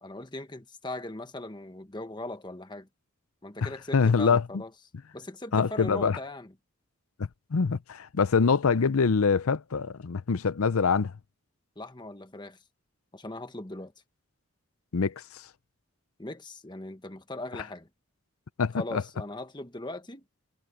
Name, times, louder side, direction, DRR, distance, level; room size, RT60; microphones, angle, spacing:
voice 1, 0.0-2.9 3.4-4.7 5.1-6.5 11.7-12.6 13.1-13.9 16.2-17.9 18.8-20.2, left 2 dB, 20° left, 1.4 m, -39 dB
voice 2, 3.6-4.4 5.5-6.2 7.2-11.1 14.9-15.5 18.6-19.0, left 5 dB, 85° left, 0.6 m, -25 dB
head